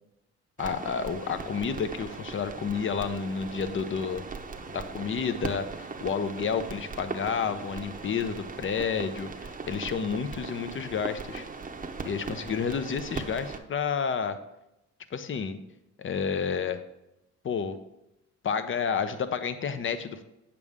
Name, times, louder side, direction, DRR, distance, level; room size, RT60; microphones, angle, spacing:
voice 1, 0.6-4.2 4.7-11.4 12.0-14.4 15.1-15.6 16.0-16.8 17.4-17.8 18.4-20.2, left 6 dB, 40° left, 11 dB, 0.8 m, -30 dB
sound 1, 0.6-13.6, right 4 dB, 25° right, 0.9 m, -39 dB
8.2 x 7.0 x 3.6 m, 0.87 s
cardioid pair, 90°, 30 cm